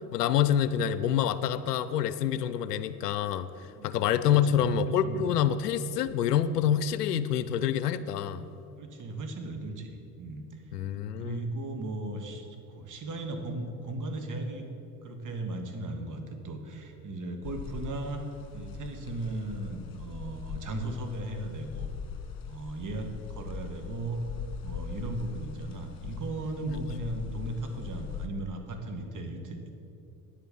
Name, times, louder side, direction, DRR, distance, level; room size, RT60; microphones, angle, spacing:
voice 1, 0.1-3.5 3.8-8.5 10.7-11.5, left 9 dB, 90° left, 13 dB, 0.6 m, -27 dB
voice 2, 3.7-4.7 5.0-5.3 8.8-10.6 11.2-14.7 15.0-18.2 18.5-21.9 22.5-24.2 24.6-29.8, right 2 dB, 40° right, 5 dB, 1.9 m, -37 dB
sound 1, 17.4-28.3, left 6 dB, 50° left, 1.8 m, -41 dB
10.0 x 8.2 x 7.4 m, 2.7 s
hypercardioid pair, 70°, 46 cm